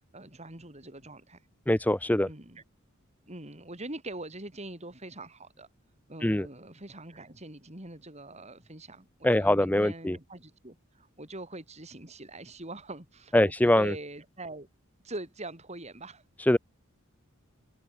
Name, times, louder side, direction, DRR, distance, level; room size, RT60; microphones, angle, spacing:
voice 1, 0.1-1.4 2.2-2.6 3.3-5.7 6.1-14.7 15.0-16.2, right 2 dB, 30° right, 5.1 m, -43 dB
voice 2, 1.7-2.3 6.2-6.5 9.2-10.2 13.3-13.9 16.4-16.6, left 1 dB, 10° left, 0.6 m, -23 dB
head